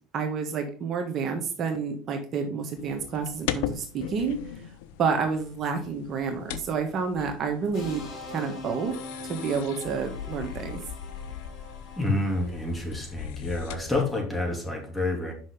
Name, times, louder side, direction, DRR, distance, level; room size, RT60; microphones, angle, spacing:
voice 1, 0.1-4.4 5.0-8.9 9.2-10.8, right 5 dB, 45° right, 4 dB, 1.4 m, -29 dB
sound 1, 2.8-14.2, left 10 dB, 80° left, 0.6 m, -39 dB
sound 2, 7.7-13.1, left 3 dB, 55° left, 3.0 m, -42 dB
voice 2, 12.0-15.3, left 2 dB, 10° left, 1 dB, 2.9 m, -28 dB
6.2 x 5.7 x 4.9 m, 0.42 s
supercardioid pair, 90°, 0 cm